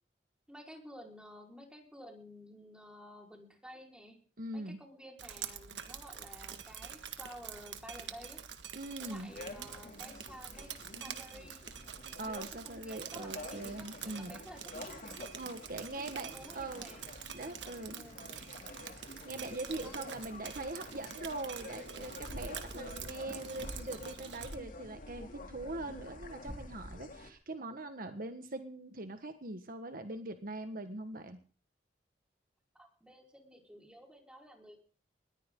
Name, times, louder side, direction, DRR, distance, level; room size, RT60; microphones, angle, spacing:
voice 1, 0.5-4.2 4.5-8.4 9.0-11.6 12.2-15.1 16.0-17.1 17.9-18.2 19.8-20.0 32.7-34.8, equal, 5° right, 1 dB, 4.6 m, -52 dB
voice 2, 4.4-4.8 8.7-9.3 12.2-14.4 15.3-16.9 17.3-18.0 18.9-31.4, right 2 dB, 50° right, 8 dB, 1.4 m, -42 dB
Drip, 5.2-24.5, right 8 dB, 75° right, 1.8 m, -47 dB
sound 1, 9.3-27.3, left 2 dB, 50° left, 2.8 m, -48 dB
20.5 x 14.5 x 3.8 m, 0.40 s
head